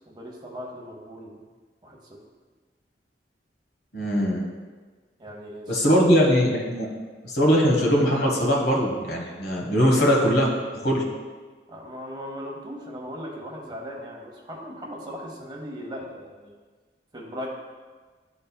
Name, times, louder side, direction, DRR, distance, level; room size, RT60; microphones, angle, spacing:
voice 1, 0.1-1.4 1.8-2.2 5.2-6.1 6.8-7.0 11.7-16.6 17.1-17.5, equal, 25° right, -1 dB, 0.9 m, -38 dB
voice 2, 3.9-4.4 5.7-6.9 7.2-10.5 10.8-11.0, equal, 60° left, -1 dB, 1.3 m, -21 dB
11.5 x 3.9 x 2.3 m, 1.4 s
head